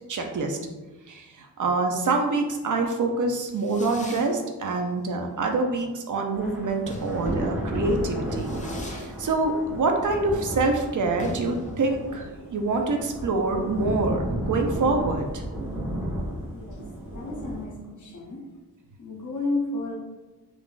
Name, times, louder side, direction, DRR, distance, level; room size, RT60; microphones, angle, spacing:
voice 1, 0.1-0.6 1.1-8.5 8.9-15.4, right 3 dB, 55° right, 3 dB, 0.5 m, -26 dB
Fireworks, 3.2-15.4, left 1 dB, 20° left, 0.4 m, -43 dB
Thunder / Rain, 6.3-17.6, right 1 dB, 5° right, 1.1 m, -33 dB
voice 2, 16.5-18.4 19.0-20.0, left 2 dB, 50° left, -1 dB, 0.8 m, -32 dB
3.7 x 2.4 x 2.4 m, 1.2 s
wide cardioid pair, 85°, 38 cm